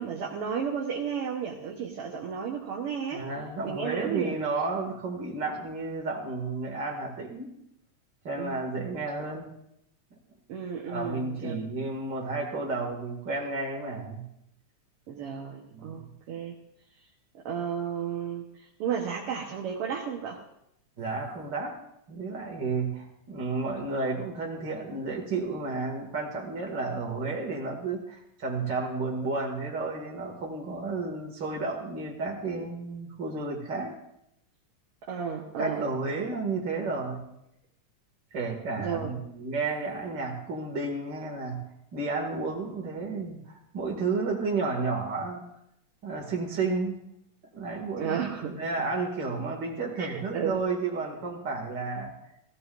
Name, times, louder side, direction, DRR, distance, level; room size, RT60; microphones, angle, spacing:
voice 1, 0.0-3.2 3.6-4.4 8.4-8.6 10.5-11.6 15.1-16.5 17.3-20.4 35.1-35.9 38.8-39.1 48.0-48.6 50.0-50.6, right 7 dB, 60° right, -1 dB, 1.8 m, -33 dB
voice 2, 3.1-7.5 8.2-9.5 10.9-14.3 15.7-16.1 21.0-21.8 22.1-34.0 35.6-37.3 38.3-45.4 46.0-47.0 47.5-52.1, right 3 dB, 35° right, 1 dB, 2.6 m, -32 dB
17.0 x 17.0 x 2.6 m, 0.79 s
omnidirectional pair, 3.6 m